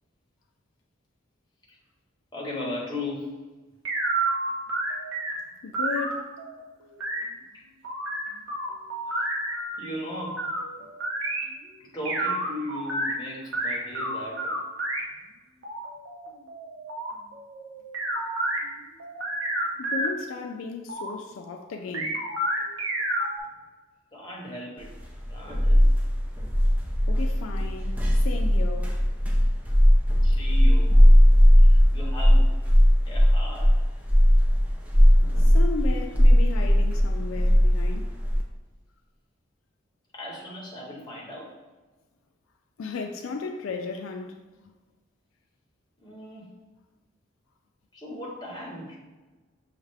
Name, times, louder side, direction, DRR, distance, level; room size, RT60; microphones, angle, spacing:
voice 1, 2.3-3.4 7.5-7.6 9.1-9.3 9.8-10.5 11.8-14.5 24.1-24.9 25.3-25.9 30.2-31.1 31.6-32.6 33.1-33.8 40.1-41.6 46.0-46.5 47.9-49.0, left 1 dB, 20° left, 0.9 m, -37 dB
sound 1, 3.9-5.3 5.7-7.2 7.8-9.8 10.2-11.4 12.1-13.1 13.5-15.0 15.6-18.6 19.0-20.1 20.5-21.1 21.9-23.4, right 1 dB, 75° right, 0.8 m, -30 dB
voice 2, 5.6-6.3 10.8-10.9 19.8-22.2 27.1-29.0 35.2-38.1 42.8-44.4 44.6-44.7, left 4 dB, 80° left, 0.4 m, -35 dB
sound 2, 24.9-38.4, equal, 5° right, 0.4 m, -18 dB
6.3 x 2.4 x 3.3 m
head